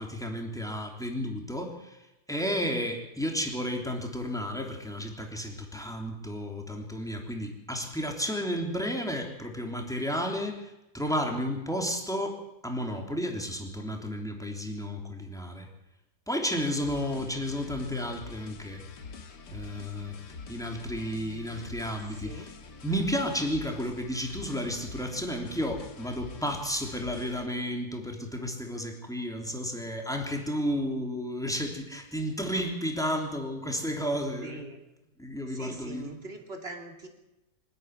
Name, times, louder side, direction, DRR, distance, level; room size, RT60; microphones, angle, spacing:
voice 1, 0.0-2.0 2.3-15.7 16.3-18.8 19.5-20.2 20.5-22.5 22.8-34.6 35.2-36.1, equal, ahead, 2 dB, 3.3 m, -32 dB
sound 1, 16.8-27.5, left 4 dB, 80° left, 2.2 m, -45 dB
voice 2, 21.1-21.8 22.1-22.5 34.4-34.8 35.5-37.1, right 2 dB, 35° right, 3 dB, 3.2 m, -43 dB
25.0 x 12.0 x 9.5 m, 0.94 s
omnidirectional pair, 1.8 m